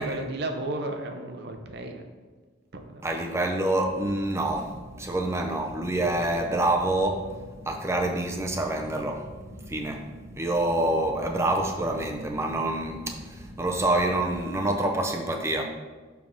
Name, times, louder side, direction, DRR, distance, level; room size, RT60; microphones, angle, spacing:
voice 1, 0.0-2.0 2.7-3.2, right 2 dB, 55° right, 5 dB, 0.6 m, -33 dB
voice 2, 3.0-7.3 7.6-9.3 9.7-10.1 10.4-15.6, right 1 dB, 15° right, 3 dB, 0.6 m, -27 dB
sound 1, 3.8-14.6, equal, 80° right, 1.2 m, -44 dB
7.2 x 3.5 x 5.1 m, 1.3 s
head